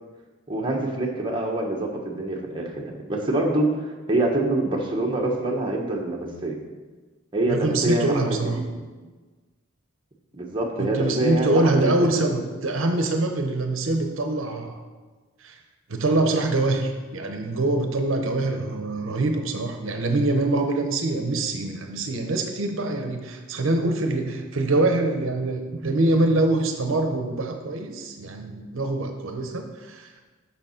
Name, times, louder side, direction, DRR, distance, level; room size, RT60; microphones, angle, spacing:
voice 1, 0.5-6.6 7.3-8.8 10.3-12.4, right 2 dB, 25° right, -1 dB, 1.1 m, -26 dB
voice 2, 7.5-8.6 10.8-14.8 15.4-15.6 15.9-30.3, right 2 dB, 75° right, 5 dB, 0.8 m, -24 dB
6.8 x 5.6 x 5.7 m, 1.3 s
head